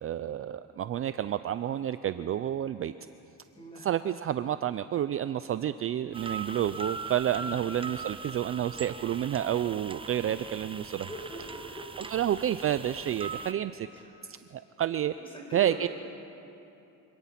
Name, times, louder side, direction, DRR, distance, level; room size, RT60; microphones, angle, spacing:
voice 1, 0.0-2.9 3.8-11.1 12.1-13.9 14.5-15.2 15.5-15.9, right 11 dB, 40° right, 12 dB, 0.5 m, -30 dB
voice 2, 3.5-3.9 7.3-7.7 10.9-12.1 13.9-14.3 15.2-15.9, equal, 15° left, -1 dB, 5.3 m, -43 dB
sound 1, 6.1-13.5, right 4 dB, 15° right, 0.8 m, -40 dB
25.5 x 18.0 x 5.9 m, 2.8 s
cardioid pair, 125°, 35 cm